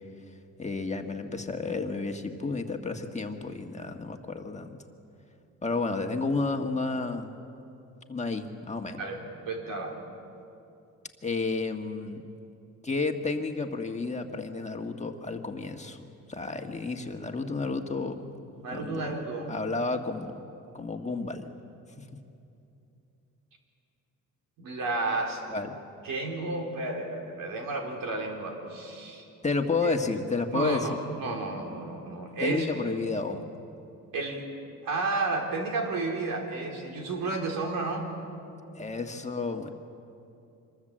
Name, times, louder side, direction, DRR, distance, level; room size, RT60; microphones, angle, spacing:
voice 1, 0.6-4.8 5.6-7.3 8.1-9.0 11.2-12.2 12.8-18.3 18.7-19.2 19.5-20.5 20.7-21.5 22.0-22.2 25.5-25.7 29.4-31.0 32.4-33.5 38.7-39.7, left 3 dB, 20° left, 4 dB, 1.6 m, -31 dB
voice 2, 9.0-10.0 18.6-19.5 24.6-25.4 26.0-29.3 29.8-29.9 30.5-32.7 34.1-34.5 34.8-38.1, right 3 dB, 80° right, 1 dB, 4.0 m, -32 dB
25.5 x 22.0 x 7.6 m, 2.7 s
cardioid pair, 110°, 33 cm